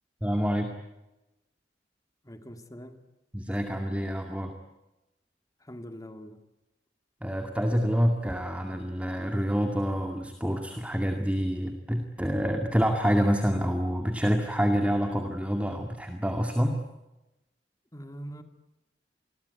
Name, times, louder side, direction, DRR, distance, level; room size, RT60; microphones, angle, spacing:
voice 1, 0.2-0.7 3.3-4.5 7.2-16.8, equal, 10° right, 5 dB, 2.2 m, -27 dB
voice 2, 2.2-3.0 5.6-6.4 17.9-18.4, equal, 20° left, 8 dB, 2.1 m, -43 dB
27.5 x 21.5 x 9.5 m, 0.99 s
head